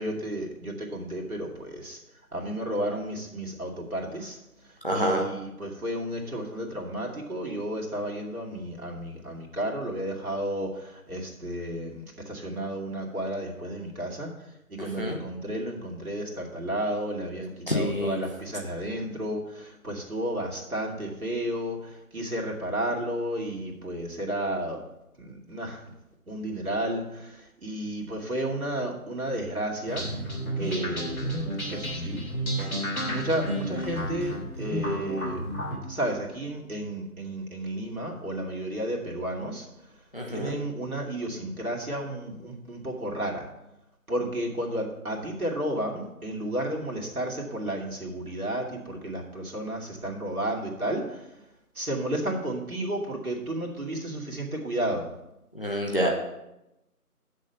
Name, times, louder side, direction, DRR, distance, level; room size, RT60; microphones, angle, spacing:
voice 1, 0.0-2.0 2.3-4.4 4.9-14.3 14.7-24.8 25.2-25.9 26.3-30.1 30.6-31.4 31.7-32.2 33.0-35.4 35.9-39.7 40.3-43.5 44.1-51.3 51.8-55.1, right 1 dB, 70° right, -1 dB, 2.5 m, -32 dB
voice 2, 4.8-5.2 14.8-15.2 17.7-18.2 40.1-40.6 55.5-56.1, equal, 35° left, 0 dB, 1.2 m, -27 dB
sound 1, 29.9-35.8, right 1 dB, 65° left, 3.1 m, -31 dB
8.5 x 6.5 x 5.7 m, 0.90 s
figure-of-eight pair, 180°, 45 cm